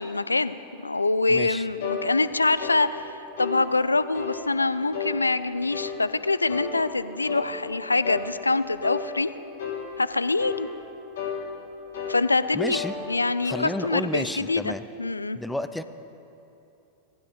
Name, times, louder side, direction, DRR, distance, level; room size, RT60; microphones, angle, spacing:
voice 1, 0.0-3.1 3.4-9.3 10.0-10.7 12.1-12.8 13.1-14.7 15.0-15.4, left 3 dB, 80° left, 15 dB, 0.4 m, -25 dB
voice 2, 1.3-1.7 12.5-12.9 13.4-14.8 15.3-15.8, left 1 dB, 5° left, 11 dB, 0.6 m, -31 dB
sound 1, 1.8-2.0 2.6-2.8 3.4-3.6 4.1-4.4 4.9-5.2 5.7-6.0 6.5-6.7 7.3-7.5 8.0-8.3 8.8-9.1 9.6-9.8 10.4-10.6 11.2-11.4 11.9-12.2 12.7-13.0 13.5-13.7, left 7 dB, 55° left, 2.3 m, -31 dB
18.0 x 15.0 x 3.8 m, 2.9 s
figure-of-eight pair, 90°, 0 cm